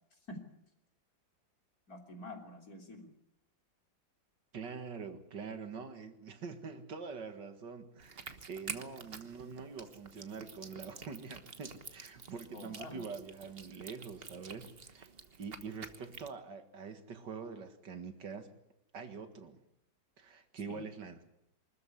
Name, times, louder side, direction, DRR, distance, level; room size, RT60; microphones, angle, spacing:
voice 1, 1.9-3.1 12.5-13.0 20.6-20.9, left 1 dB, 50° left, 3 dB, 3.7 m, -47 dB
voice 2, 4.5-15.1 15.4-18.5 18.9-19.6 20.2-21.2, right 5 dB, 70° right, 8 dB, 2.5 m, -45 dB
sound 1, 8.0-16.3, right 5 dB, 35° right, 1.3 m, -49 dB
24.5 x 13.5 x 9.8 m, 0.81 s
omnidirectional pair, 2.0 m